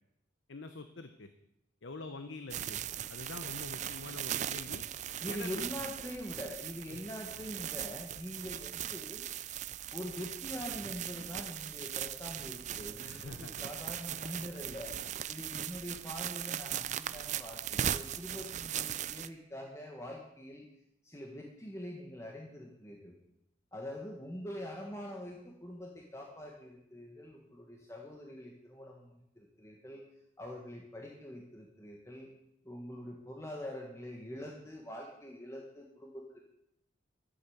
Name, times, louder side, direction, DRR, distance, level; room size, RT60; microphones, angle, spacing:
voice 1, 0.5-1.3 1.8-2.8 3.1-4.8 5.3-5.6 6.9-7.0 13.0-13.7, left 3 dB, 80° left, 8 dB, 0.9 m, -45 dB
sound 1, 2.5-19.3, right 10 dB, 40° right, 0.4 m, -39 dB
voice 2, 5.2-9.3 9.9-20.7 21.0-23.1 23.7-30.0 30.4-32.3 32.6-36.4, equal, 15° left, 0 dB, 1.5 m, -44 dB
12.5 x 8.4 x 7.2 m, 0.81 s
head